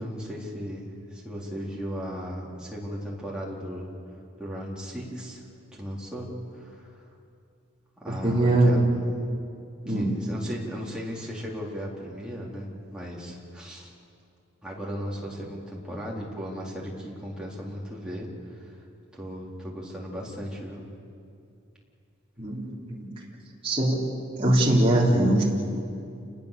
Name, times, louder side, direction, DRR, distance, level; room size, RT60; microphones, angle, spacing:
voice 1, 0.0-4.0 4.4-5.4 5.7-7.0 8.0-8.9 9.9-13.9 14.6-18.8 19.1-20.8, equal, 5° right, -4 dB, 4.1 m, -36 dB
voice 2, 8.2-8.9 9.8-10.1 22.4-23.1 23.6-24.0 24.4-25.4, right 1 dB, 25° right, -5 dB, 3.9 m, -21 dB
29.0 x 20.5 x 7.0 m, 2.5 s
head